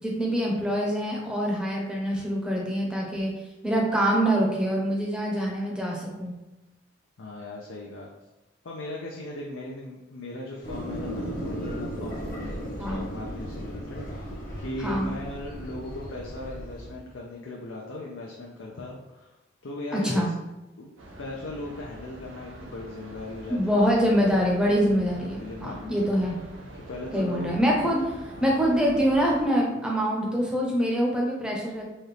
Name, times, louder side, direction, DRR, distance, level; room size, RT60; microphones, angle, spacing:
voice 1, 0.0-3.3 3.6-6.3 12.8-13.0 14.8-15.1 19.9-20.3 23.5-26.4 27.1-28.1 28.4-31.8, equal, 5° right, -2 dB, 0.7 m, -25 dB
voice 2, 7.2-8.1 8.6-14.3 14.6-19.3 19.6-20.2 20.8-20.9 21.2-24.0 25.4-26.1 26.7-27.5 28.3-28.6 29.5-29.8, left 2 dB, 90° left, -3 dB, 0.6 m, -38 dB
sound 1, 10.6-17.0, equal, 50° left, 1.0 m, -36 dB
sound 2, 21.0-29.5, right 1 dB, 85° right, 0.7 m, -44 dB
4.2 x 2.4 x 3.3 m, 1.0 s
head